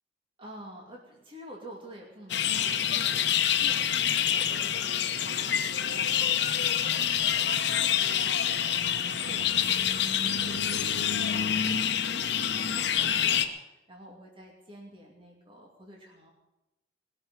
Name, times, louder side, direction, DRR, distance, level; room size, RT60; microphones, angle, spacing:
voice 1, 0.4-16.3, equal, 30° right, -1 dB, 2.6 m, -49 dB
sound 1, 2.3-13.5, left 9 dB, 60° left, 1.0 m, -27 dB
20.0 x 7.0 x 9.0 m, 0.98 s
head